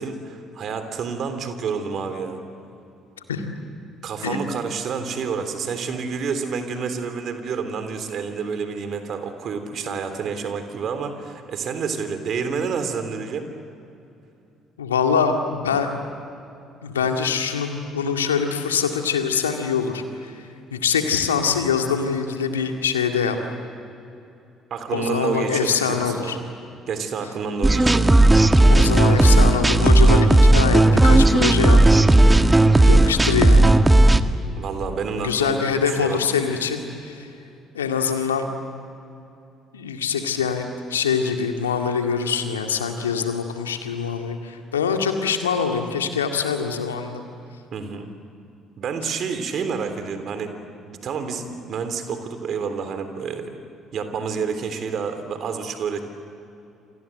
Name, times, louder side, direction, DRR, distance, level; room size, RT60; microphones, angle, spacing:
voice 1, 0.0-2.4 4.0-13.5 24.7-26.4 26.9-28.1 34.6-36.2 47.7-48.1 48.8-50.5 50.9-53.6 53.9-56.0, right 5 dB, 50° right, 8 dB, 3.3 m, -29 dB
voice 2, 14.8-15.9 16.8-20.4 20.7-23.4 24.9-26.4 28.7-31.8 32.8-33.7 35.2-37.3 37.7-38.5 39.7-47.2, left 6 dB, 85° left, 4 dB, 2.1 m, -24 dB
sound 1, 27.6-34.2, right 2 dB, 15° right, 1.5 m, -14 dB
28.5 x 26.5 x 7.8 m, 2.7 s
figure-of-eight pair, 50°, 0 cm